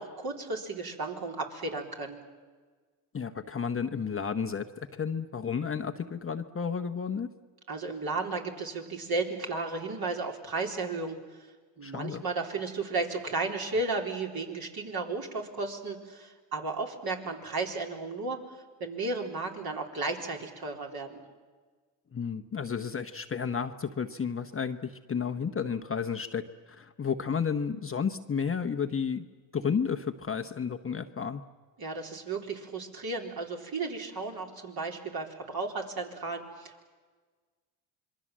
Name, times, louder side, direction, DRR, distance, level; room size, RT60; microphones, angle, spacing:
voice 1, 0.0-2.2 7.7-11.5 11.8-18.4 18.8-21.2 31.8-36.9, right 3 dB, 45° right, 2 dB, 4.1 m, -34 dB
voice 2, 3.1-7.3 11.8-12.2 22.1-29.2 29.5-31.4, left 6 dB, 25° left, 7 dB, 1.0 m, -32 dB
26.5 x 22.0 x 7.6 m, 1.4 s
supercardioid pair, 80°, 50 cm